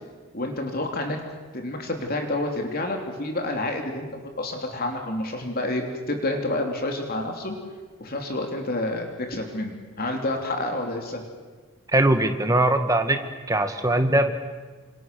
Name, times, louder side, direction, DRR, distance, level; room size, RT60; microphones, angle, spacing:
voice 1, 0.3-1.2 1.5-7.5 8.0-11.2, left 1 dB, 45° left, 3 dB, 3.4 m, -29 dB
voice 2, 11.9-13.2 13.5-14.3, right 1 dB, 15° right, 7 dB, 1.9 m, -21 dB
28.0 x 28.0 x 7.0 m, 1.4 s
head